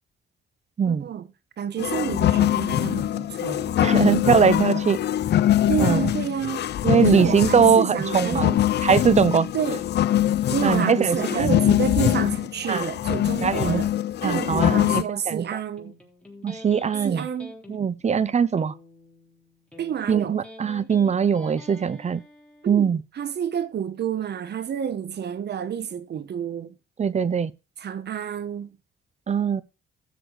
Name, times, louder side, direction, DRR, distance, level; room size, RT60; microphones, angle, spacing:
voice 1, 0.8-1.3 1.6-4.8 5.7-6.7 7.0-8.6 9.5-9.8 10.5-13.9 14.2-15.9 17.0-17.5 19.8-20.4 22.6-22.9 23.1-26.7 27.8-28.8, right 8 dB, 55° right, 1.4 m, -29 dB
sound 1, 1.8-15.0, left 12 dB, 60° left, 0.6 m, -23 dB
voice 2, 3.8-5.0 5.8-6.0 6.8-8.5 8.8-9.5 10.6-11.6 12.7-12.9 13.4-13.8 14.2-15.5 16.4-17.2 17.7-18.7 20.1-22.2 22.7-23.0 27.0-27.5 29.3-29.6, right 7 dB, 35° right, 0.8 m, -21 dB
Electric guitar, 15.8-22.7, left 2 dB, 5° left, 3.7 m, -46 dB
15.5 x 6.1 x 4.7 m
cardioid pair, 90°, 20 cm